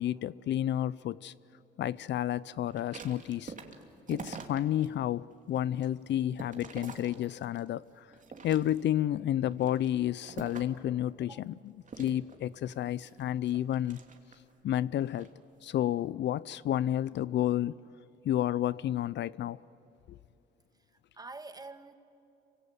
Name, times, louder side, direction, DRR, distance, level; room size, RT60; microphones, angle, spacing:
voice 1, 0.0-1.3 1.8-3.5 4.1-8.1 8.4-14.0 14.6-15.3 15.6-17.8 18.2-19.6 20.1-20.2, left 12 dB, 65° left, 0.5 m, -31 dB
sound 1, 2.7-4.9 5.3-7.7 8.1-9.0 9.5-10.9 11.8-14.5 15.0-15.3, right 5 dB, 40° right, 2.7 m, -46 dB
voice 2, 20.9-21.9, right 3 dB, 20° right, 1.8 m, -46 dB
27.0 x 25.0 x 8.0 m
cardioid pair, 90°, 20 cm